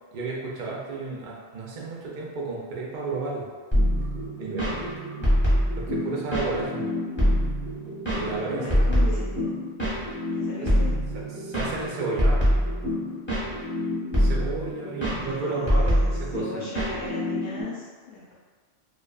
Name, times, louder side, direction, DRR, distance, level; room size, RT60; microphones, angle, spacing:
voice 1, 0.1-3.5 4.4-4.9 5.8-6.9 8.1-9.2 10.6-10.7 11.3-12.4 14.2-16.7, right 3 dB, 60° right, -4 dB, 0.6 m, -32 dB
sound 1, 3.7-17.6, equal, 10° left, 0.7 m, -25 dB
voice 2, 5.1-5.4 8.5-9.5 10.3-10.9 15.2-18.3, left 3 dB, 60° left, -7 dB, 0.7 m, -38 dB
2.5 x 2.3 x 2.2 m, 1.5 s
omnidirectional pair, 1.3 m